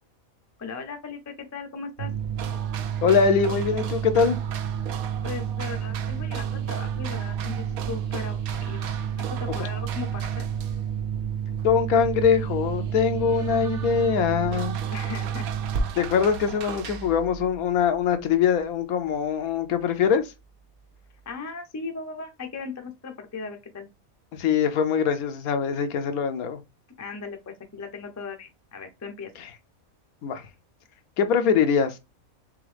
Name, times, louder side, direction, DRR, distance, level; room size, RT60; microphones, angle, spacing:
voice 1, 0.6-2.1 5.2-10.5 14.9-15.5 21.3-23.9 27.0-29.3, left 4 dB, 25° left, 0.3 m, -37 dB
sound 1, 2.0-18.3, right 8 dB, 55° right, 1.1 m, -30 dB
sound 2, 2.4-10.9 11.6-11.7 12.2-17.2, right 9 dB, 80° right, 1.1 m, -40 dB
voice 2, 3.0-4.4 11.6-14.8 16.0-20.2 24.3-26.6 29.4-29.5 30.2-30.4 31.2-32.0, left 6 dB, 85° left, 1.2 m, -23 dB
3.7 x 3.4 x 3.3 m
omnidirectional pair, 1.5 m